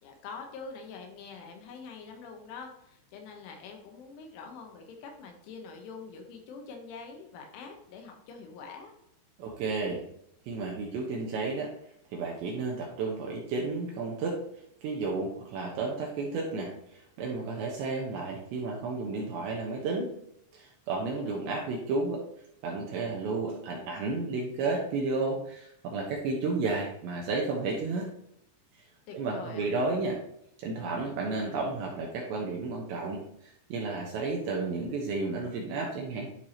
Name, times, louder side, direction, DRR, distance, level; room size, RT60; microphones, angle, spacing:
voice 1, 0.0-8.9 21.2-21.4 29.1-29.7, left 5 dB, 75° left, 3 dB, 3.4 m, -45 dB
voice 2, 9.4-10.0 10.5-11.7 12.1-14.4 14.8-20.1 20.5-22.2 22.6-28.1 29.1-30.2 30.6-36.3, right 3 dB, 75° right, -1 dB, 2.8 m, -32 dB
12.0 x 4.7 x 2.8 m, 0.76 s
omnidirectional pair, 5.9 m